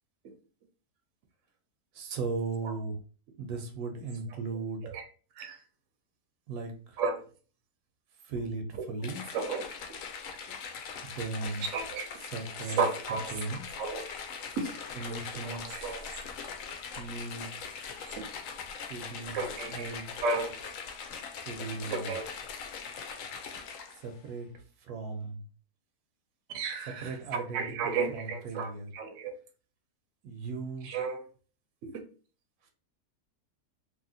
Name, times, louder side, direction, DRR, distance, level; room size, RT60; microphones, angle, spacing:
voice 1, 1.9-3.0 3.4-5.0 6.5-7.0 8.2-9.2 11.2-11.6 12.2-12.8 13.1-13.6 14.9-16.2 17.0-17.8 18.9-19.4 19.7-20.0 21.4-22.2 23.9-24.5 24.8-25.4 26.8-28.9 30.2-30.9 32.6-32.7, right 3 dB, 80° right, 1.2 m, -37 dB
sound 1, 9.0-24.1, left 6 dB, 70° left, 0.9 m, -41 dB
voice 2, 9.3-9.6 11.7-12.0 12.8-13.3 13.8-14.1 14.6-14.7 15.4-16.1 18.2-18.3 19.3-19.9 20.2-20.6 21.9-22.2 26.5-29.3 30.8-31.2, right 4 dB, 60° right, 0.9 m, -33 dB
2.8 x 2.7 x 2.7 m
omnidirectional pair, 1.6 m